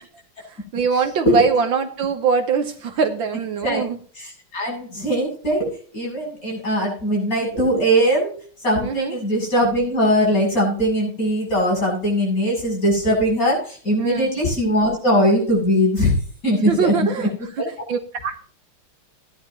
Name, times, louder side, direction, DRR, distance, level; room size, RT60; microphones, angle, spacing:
voice 1, 0.5-4.0 8.8-9.2 14.0-14.3 16.6-17.3 17.6-18.5, right 5 dB, 65° right, 7 dB, 1.7 m, -23 dB
voice 2, 4.2-8.3 8.6-16.1 16.4-17.3, equal, 40° left, -2 dB, 8.1 m, -20 dB
17.5 x 11.0 x 2.9 m, 0.43 s
omnidirectional pair, 2.4 m